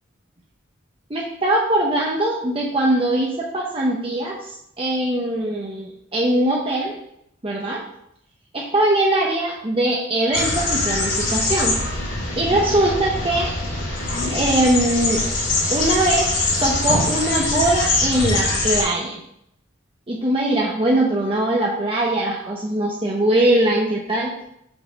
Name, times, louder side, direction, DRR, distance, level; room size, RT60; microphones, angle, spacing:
voice 1, 1.1-7.0 7.4-7.8 8.5-11.8 12.4-13.5 14.3-15.2 15.7-19.2 20.1-24.3, right 1 dB, 25° right, -2 dB, 0.8 m, -21 dB
sound 1, 10.3-18.8, left 2 dB, 65° left, 3.0 m, -23 dB
7.9 x 4.0 x 5.2 m, 0.77 s
head